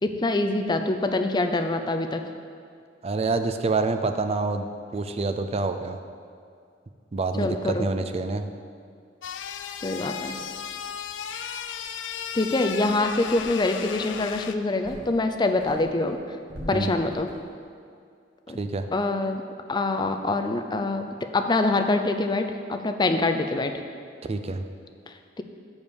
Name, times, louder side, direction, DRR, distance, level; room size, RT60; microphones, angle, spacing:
voice 1, 0.0-2.2 7.4-7.9 9.8-10.4 12.3-16.2 16.7-17.3 18.5-18.6 18.9-19.4 19.7-21.0 21.3-23.7 25.1-25.4, left 2 dB, 25° left, 6 dB, 0.4 m, -25 dB
voice 2, 3.0-6.0 7.1-8.5 16.7-16.9 18.5-18.9 24.3-24.6, right 3 dB, 35° right, 8 dB, 0.4 m, -27 dB
sound 1, 9.2-14.5, left 8 dB, 85° left, 0.4 m, -35 dB
sound 2, 13.4-13.9 14.5-15.3 15.6-17.6, equal, 75° right, 1.3 m, -43 dB
7.0 x 5.2 x 6.3 m, 2.3 s
head